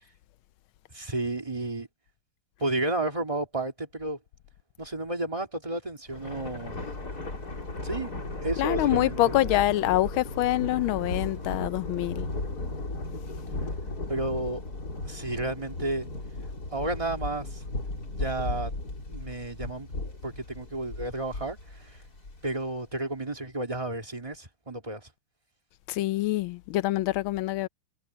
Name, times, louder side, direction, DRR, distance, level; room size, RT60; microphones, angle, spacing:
voice 1, 0.9-1.9 2.6-4.2 4.8-6.8 7.8-8.1 8.4-9.2 14.1-14.6 15.0-16.1 16.7-17.6 18.1-18.7 19.1-19.9 20.2-22.0 22.4-25.1, right 2 dB, 15° right, 2.8 m, -32 dB
Thunder, 6.1-22.7, left 2 dB, 45° left, 4.6 m, -36 dB
voice 2, 8.6-12.3 25.9-27.7, left 15 dB, 75° left, 1.4 m, -26 dB
omnidirectional pair, 2.4 m